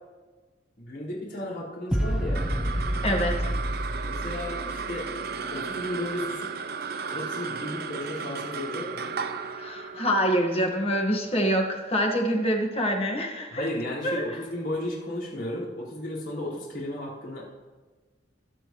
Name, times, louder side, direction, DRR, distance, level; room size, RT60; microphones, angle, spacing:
voice 1, 0.8-2.5 4.0-5.1 5.5-6.5 7.1-9.1 13.5-17.4, left 1 dB, 70° left, -8 dB, 4.5 m, -34 dB
sound 1, 1.9-5.3, equal, 5° right, 0.8 m, -29 dB
sound 2, 2.1-12.7, right 5 dB, 55° right, 0.6 m, -35 dB
voice 2, 3.0-3.5 9.6-13.7 14.0-14.4, equal, 30° left, 1 dB, 1.6 m, -26 dB
22.5 x 8.7 x 3.1 m, 1.3 s
head